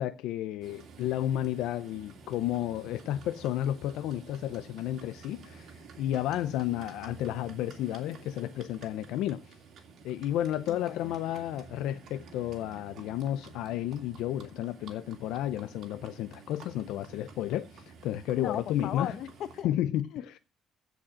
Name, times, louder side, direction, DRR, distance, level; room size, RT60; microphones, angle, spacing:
voice 1, 0.0-9.5 10.0-19.1 19.6-20.1, left 12 dB, 80° left, 0.6 m, -32 dB
Livestock farm animals working animals, 0.6-19.6, right 5 dB, 50° right, 2.6 m, -51 dB
voice 2, 10.7-11.1 18.3-19.7 20.1-20.4, left 10 dB, 55° left, 1.1 m, -37 dB
15.5 x 5.2 x 7.5 m
cardioid pair, 165°, 0 cm